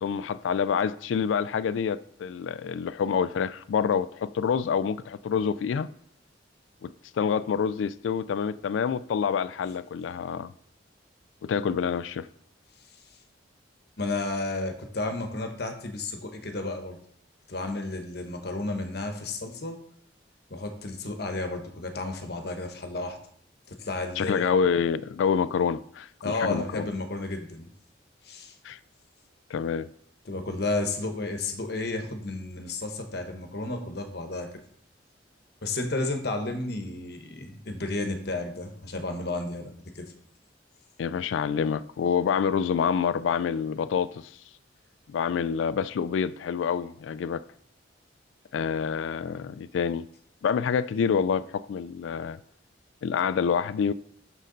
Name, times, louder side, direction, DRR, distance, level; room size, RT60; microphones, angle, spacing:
voice 1, 0.0-5.9 6.8-6.9 7.2-10.5 11.4-12.3 24.2-26.9 28.6-28.8 29.5-29.9 41.0-44.3 45.1-47.4 48.5-50.0 50.4-52.4 53.0-53.9, left 6 dB, 90° left, 0.3 m, -27 dB
voice 2, 14.0-17.0 17.5-19.8 20.5-23.2 23.7-24.5 26.2-27.7 28.2-28.6 30.2-34.5 35.6-40.1, left 2 dB, 60° left, 1.0 m, -32 dB
6.5 x 6.3 x 3.9 m
head